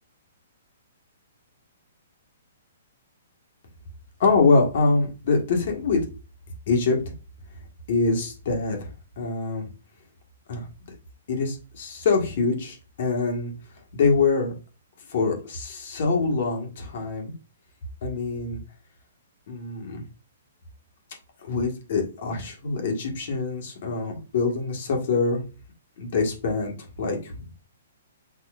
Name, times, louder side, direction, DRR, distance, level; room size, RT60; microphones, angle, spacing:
voice 1, 4.2-6.0 6.7-7.0 7.9-8.9 9.2-9.7 10.5-10.7 11.3-13.5 13.9-14.5 15.1-17.3 18.0-18.6 19.5-20.0 21.5-25.4 26.0-27.4, left 4 dB, 55° left, 2 dB, 1.5 m, -24 dB
6.7 x 2.9 x 2.4 m, 0.33 s
hypercardioid pair, 155°, 0 cm